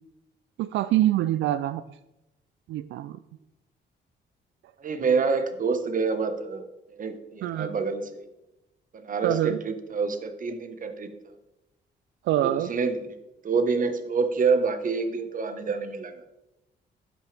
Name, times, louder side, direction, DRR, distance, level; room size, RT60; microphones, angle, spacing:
voice 1, 0.6-2.0 2.7-3.2 7.4-7.7 9.2-9.6 12.2-12.7, right 13 dB, 80° right, 13 dB, 0.4 m, -25 dB
voice 2, 4.8-6.6 6.9-8.2 8.9-11.1 12.4-13.0 13.4-16.2, right 4 dB, 45° right, 8 dB, 1.3 m, -27 dB
11.5 x 9.2 x 3.4 m, 0.95 s
cardioid pair, 95°, 19 cm